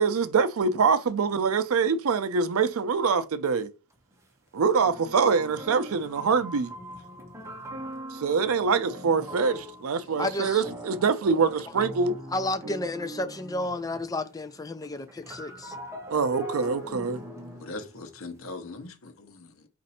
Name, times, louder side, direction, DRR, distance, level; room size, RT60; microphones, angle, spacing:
voice 1, 0.0-3.7 4.5-6.7 8.1-12.2 16.1-17.2, right 5 dB, 80° right, 0.5 m, -24 dB
sound 1, 3.9-4.0 4.8-14.3 14.6-18.5, equal, 15° right, 0.8 m, -41 dB
voice 2, 10.2-10.6 12.3-15.8, left 2 dB, 15° left, 0.4 m, -31 dB
voice 3, 17.6-19.7, left 3 dB, 70° left, 0.8 m, -40 dB
4.2 x 2.6 x 4.1 m
head